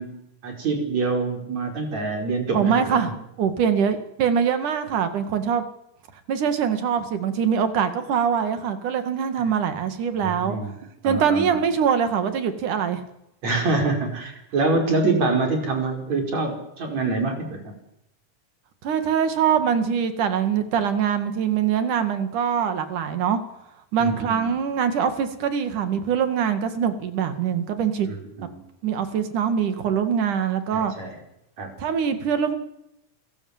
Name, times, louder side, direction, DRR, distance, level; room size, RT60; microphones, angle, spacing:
voice 1, 0.0-3.1 10.2-10.7 11.0-11.6 13.4-17.6 24.0-24.5 28.0-28.6 30.7-31.2 31.6-31.7, right 3 dB, 60° right, 3 dB, 6.2 m, -26 dB
voice 2, 2.5-5.6 6.3-10.6 11.0-13.0 18.8-23.4 23.9-28.1 28.8-30.9 31.8-32.6, right 7 dB, 85° right, 9 dB, 3.6 m, -23 dB
29.0 x 16.0 x 7.4 m, 0.82 s
omnidirectional pair, 3.5 m